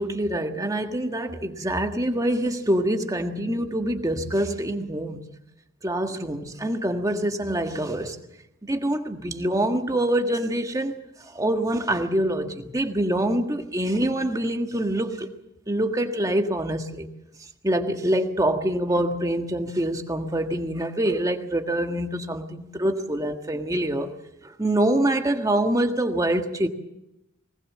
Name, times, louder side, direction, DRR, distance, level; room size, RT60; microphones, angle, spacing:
voice 1, 0.0-5.2 5.8-8.2 8.6-11.0 11.2-15.3 15.7-17.1 17.6-24.1 24.4-26.7, right 1 dB, 15° right, 5 dB, 1.6 m, -25 dB
20.5 x 19.5 x 7.5 m, 0.88 s
head